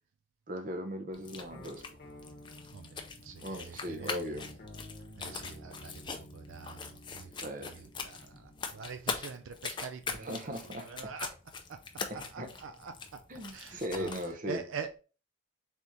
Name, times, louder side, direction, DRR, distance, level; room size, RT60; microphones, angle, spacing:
voice 1, 0.5-1.8 3.4-4.5 7.4-7.8 10.2-10.9 12.1-12.5 13.3-14.6, equal, 40° right, 0.7 m, -38 dB
sound 1, 1.1-14.3, left 5 dB, 25° left, 0.4 m, -42 dB
sound 2, 1.5-9.0, left 1 dB, 50° left, 0.9 m, -52 dB
voice 2, 2.7-4.3 5.0-11.3 11.7-11.8 12.1-15.0, right 6 dB, 75° right, 0.4 m, -45 dB
4.0 x 3.6 x 3.0 m
head